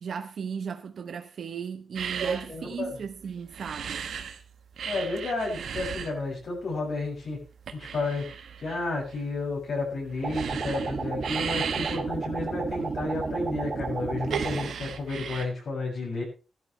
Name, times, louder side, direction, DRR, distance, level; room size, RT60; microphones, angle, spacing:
voice 1, 0.0-4.1, right 6 dB, 70° right, 0.9 m, -36 dB
sound 1, 1.9-4.4 4.7-15.4, right 7 dB, 90° right, 1.3 m, -35 dB
voice 2, 2.2-2.9 4.8-7.4 7.7-16.2, left 3 dB, 75° left, 6.7 m, -32 dB
sound 2, 10.2-14.7, right 4 dB, 50° right, 2.1 m, -32 dB
17.0 x 12.0 x 3.2 m
wide cardioid pair, 110°, 0 cm